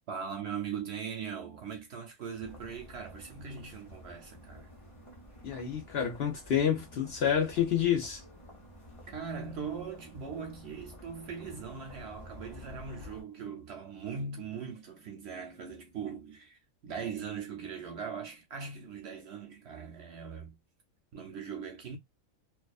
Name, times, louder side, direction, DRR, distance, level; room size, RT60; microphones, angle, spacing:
voice 1, 0.1-4.7 9.1-20.6 21.1-22.0, right 6 dB, 65° right, 0.7 m, -40 dB
sound 1, 2.4-13.2, left 1 dB, 30° left, 0.7 m, -51 dB
voice 2, 5.4-8.2, left 9 dB, 60° left, 0.7 m, -28 dB
2.4 x 2.2 x 2.3 m
omnidirectional pair, 1.4 m